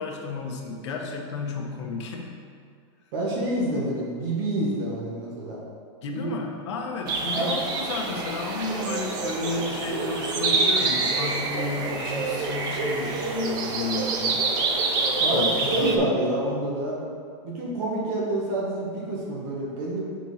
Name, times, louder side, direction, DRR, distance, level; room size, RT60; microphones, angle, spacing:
voice 1, 0.0-2.4 6.0-15.0 15.3-15.9, left 3 dB, 70° left, 1 dB, 1.1 m, -32 dB
voice 2, 3.1-5.6 6.1-6.4 7.3-7.5 15.2-17.0 17.4-20.0, right 1 dB, 45° right, -4 dB, 1.8 m, -27 dB
sound 1, 7.1-16.0, right 3 dB, 25° right, 0.6 m, -26 dB
6.1 x 4.5 x 5.6 m, 2.2 s
supercardioid pair, 175°, 15 cm